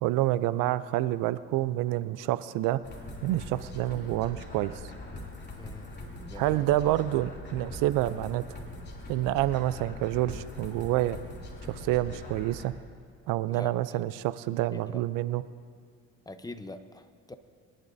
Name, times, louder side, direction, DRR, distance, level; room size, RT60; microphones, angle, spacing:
voice 1, 0.0-2.8 3.2-4.7 6.4-8.6 9.1-11.2 11.7-12.7 13.3-15.4, right 15 dB, 85° right, 15 dB, 0.5 m, -28 dB
sound 1, 2.8-12.7, left 1 dB, 35° left, 2.8 m, -42 dB
voice 2, 5.6-5.9 6.2-7.0 13.5-13.7 14.7-15.0 16.3-17.3, left 2 dB, 10° left, 10 dB, 0.8 m, -44 dB
23.5 x 11.5 x 2.7 m, 2.1 s
supercardioid pair, 80°, 32 cm